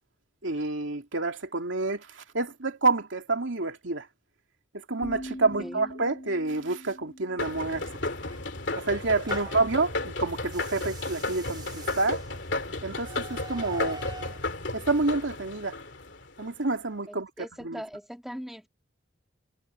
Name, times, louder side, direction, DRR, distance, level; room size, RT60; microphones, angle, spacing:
voice 1, 0.4-4.1 4.7-7.9 8.8-12.2 12.8-14.0 14.7-15.8 16.4-17.3 17.6-17.8, right 3 dB, 80° right, 2.6 m, -28 dB
sound 1, 5.0-8.9, equal, 35° left, 4.0 m, -43 dB
voice 2, 5.6-5.9 17.1-18.7, equal, ahead, 1.7 m, -40 dB
sound 2, 7.4-16.5, left 2 dB, 65° left, 2.8 m, -34 dB
sound 3, 7.9-9.7 10.4-14.4, right 3 dB, 25° right, 3.4 m, -47 dB
head